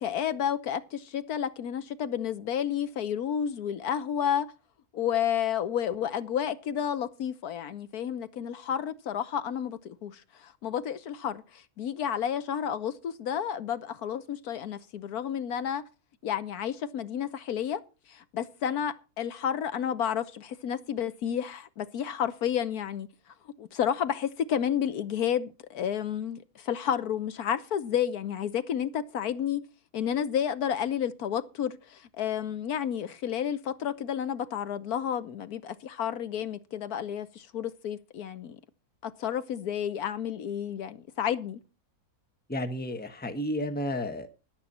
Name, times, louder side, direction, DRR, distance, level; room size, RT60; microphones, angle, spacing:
voice 1, 0.0-4.5 4.9-15.8 16.2-17.8 18.1-23.1 23.6-29.6 29.9-38.6 39.0-41.6, left 9 dB, 75° left, 1.3 m, -31 dB
voice 2, 42.5-44.3, left 1 dB, 5° left, 1.0 m, -32 dB
14.0 x 11.0 x 4.3 m
omnidirectional pair, 1.7 m